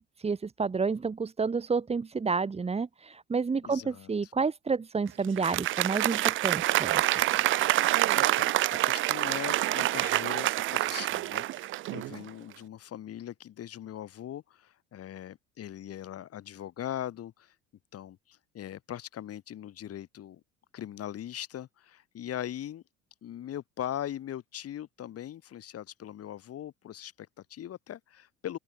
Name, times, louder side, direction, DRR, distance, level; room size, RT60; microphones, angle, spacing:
voice 1, 0.0-7.0, right 5 dB, 15° right, 1.4 m, -30 dB
voice 2, 3.6-4.3 8.1-17.5 17.9-20.4 20.7-22.8 23.2-28.6, left 11 dB, 40° left, 4.2 m, -40 dB
Applause, 5.2-12.2, right 15 dB, 35° right, 0.6 m, -27 dB
open air
figure-of-eight pair, 65°, 36 cm